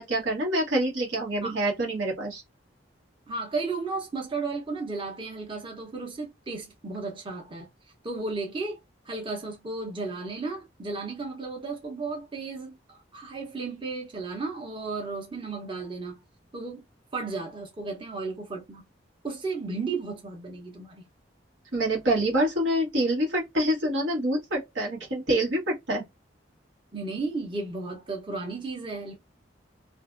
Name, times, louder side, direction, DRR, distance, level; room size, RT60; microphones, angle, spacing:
voice 1, 0.0-2.4 21.7-26.0, right 1 dB, 85° right, 1.3 m, -26 dB
voice 2, 3.3-7.7 8.0-8.8 9.0-16.2 16.5-16.8 17.1-18.8 19.2-21.1 26.9-29.1, right 3 dB, 30° right, 0.8 m, -34 dB
2.6 x 2.5 x 2.5 m
head